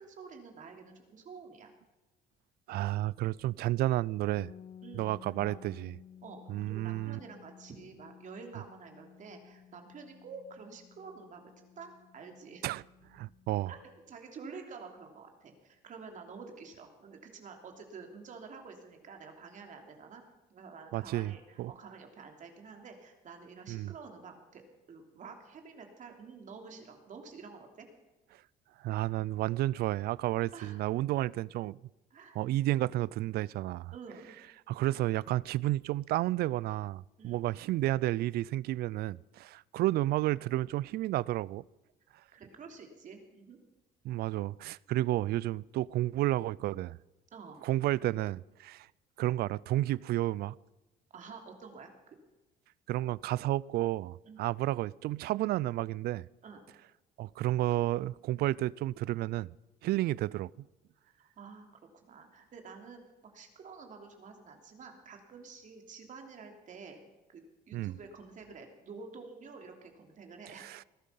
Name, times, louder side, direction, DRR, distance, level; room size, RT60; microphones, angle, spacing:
voice 1, 0.0-1.7 4.8-5.6 6.2-12.7 13.7-20.2 20.5-24.6 24.9-27.9 30.5-30.8 32.1-32.4 33.9-34.3 37.2-37.4 42.3-43.6 47.3-47.7 51.1-51.9 54.2-54.5 56.4-56.6 61.4-61.7 62.0-67.0 67.3-70.7, right 5 dB, 50° right, 3.0 m, -49 dB
voice 2, 2.7-4.5 5.0-5.9 6.5-7.2 12.6-12.8 13.1-13.7 20.9-21.7 23.7-23.9 28.8-31.8 32.3-33.9 34.7-41.6 44.0-47.0 47.6-48.9 49.2-50.5 52.9-56.3 57.2-59.5 59.8-60.5 67.7-68.0 70.6-70.8, right 15 dB, 70° right, 0.4 m, -31 dB
sound 1, 4.4-14.1, left 9 dB, 45° left, 0.6 m, -55 dB
20.0 x 12.0 x 5.7 m
cardioid pair, 110°, 17 cm